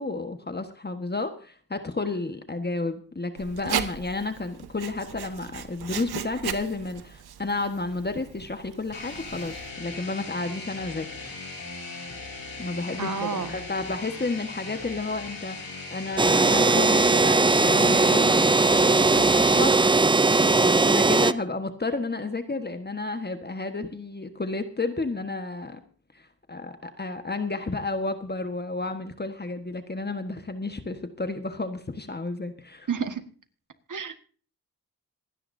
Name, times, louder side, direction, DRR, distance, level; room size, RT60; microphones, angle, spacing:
voice 1, 0.0-11.3 12.6-20.0 20.3-25.8 26.1-32.9, left 3 dB, 25° left, 8 dB, 1.4 m, -32 dB
Writing, 3.4-9.7, right 9 dB, 75° right, 1.2 m, -36 dB
sound 1, 8.9-19.6, left 3 dB, 60° left, 5.2 m, -38 dB
voice 2, 13.0-13.6 32.9-33.2 33.9-34.1, right 5 dB, 55° right, 8 dB, 1.8 m, -30 dB
sound 2, 16.2-21.3, right 3 dB, 15° right, 0.5 m, -19 dB
27.0 x 9.9 x 2.7 m, 0.41 s
cardioid pair, 60°, 38 cm